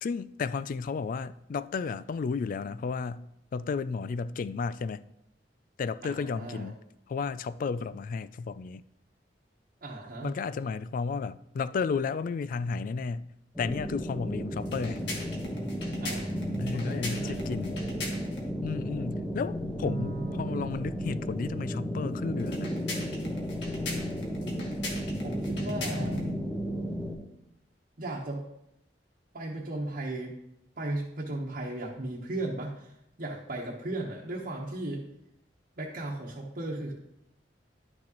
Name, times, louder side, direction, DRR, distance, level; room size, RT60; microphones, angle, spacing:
voice 1, 0.0-5.0 5.8-6.8 7.1-8.8 10.2-13.3 13.6-15.0 16.6-17.8 18.6-22.7, left 5 dB, 50° left, 0.3 m, -33 dB
voice 2, 6.0-6.7 9.8-10.3 16.0-16.4 16.7-17.4 25.2-26.2 28.0-28.4 29.3-30.4 30.8-35.0 35.8-36.9, right 2 dB, 55° right, 1.2 m, -36 dB
sound 1, 13.5-27.1, equal, 5° left, 0.7 m, -34 dB
sound 2, 14.6-18.5 22.4-26.3, left 2 dB, 75° left, 1.8 m, -40 dB
Bowed string instrument, 19.8-22.5, right 5 dB, 90° right, 0.8 m, -42 dB
11.5 x 6.1 x 3.0 m
head